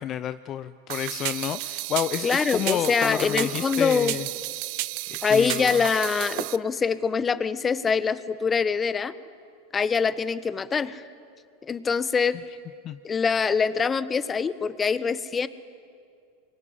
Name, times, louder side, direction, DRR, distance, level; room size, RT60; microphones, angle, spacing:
voice 1, 0.0-4.3 5.1-5.7 12.8-13.0, left 11 dB, 40° left, 12 dB, 0.7 m, -30 dB
sound 1, 0.9-6.6, right 22 dB, 60° right, 0.6 m, -32 dB
voice 2, 2.2-4.2 5.2-9.1 9.7-11.0 11.7-12.4 13.0-15.5, left 5 dB, 20° left, 15 dB, 1.1 m, -24 dB
24.5 x 22.0 x 9.9 m, 2.3 s
hypercardioid pair, 100°, 0 cm